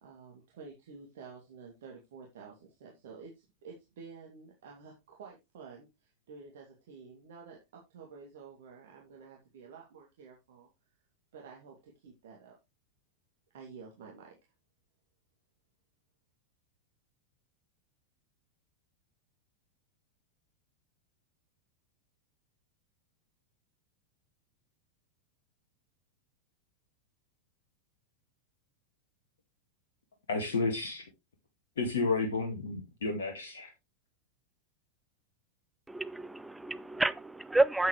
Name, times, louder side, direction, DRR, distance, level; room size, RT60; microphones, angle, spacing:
voice 1, 0.0-10.7 11.3-12.5 13.5-14.3, right 5 dB, 55° right, 2.5 m, -50 dB
voice 2, 30.3-31.0 31.8-33.7, left 3 dB, 65° left, 1.9 m, -31 dB
voice 3, 35.9-37.9, right 2 dB, 5° right, 0.6 m, -29 dB
9.2 x 8.2 x 3.2 m
figure-of-eight pair, 90°, 0 cm